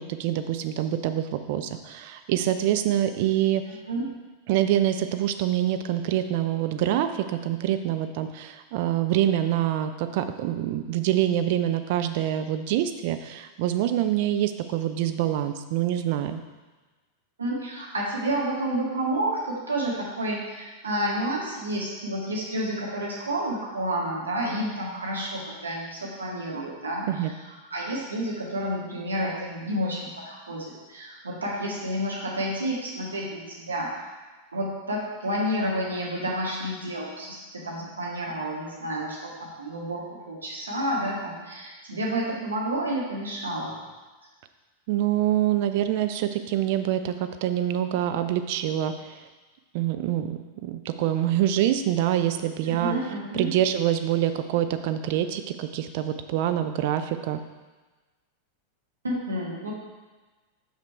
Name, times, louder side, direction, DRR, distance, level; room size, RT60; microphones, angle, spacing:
voice 1, 0.0-3.6 4.5-16.4 27.1-27.3 44.9-49.2 49.7-53.0 53.3-57.4, right 11 dB, 50° right, 9 dB, 0.5 m, -25 dB
voice 2, 3.7-4.0 17.4-34.1 34.5-43.8 52.6-53.5 59.0-59.7, right 1 dB, 75° right, -4 dB, 1.8 m, -30 dB
5.9 x 5.8 x 4.6 m, 1.2 s
figure-of-eight pair, 90°, 0 cm